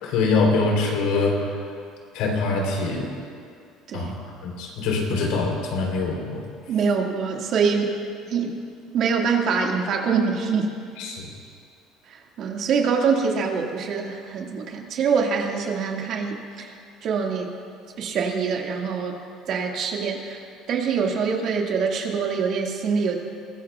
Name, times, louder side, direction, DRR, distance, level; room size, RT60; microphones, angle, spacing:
voice 1, 0.0-1.5 2.1-3.1 3.9-4.2 4.4-6.4 11.0-11.3, left 3 dB, 80° left, 0 dB, 3.5 m, -24 dB
voice 2, 6.7-7.9 8.3-8.6 8.9-10.7 12.4-16.7 17.0-17.5 18.0-19.1 19.5-20.4 20.7-23.1, right 5 dB, 55° right, 0 dB, 2.0 m, -24 dB
22.0 x 17.0 x 2.4 m, 2.3 s
cardioid pair, 120°, 0 cm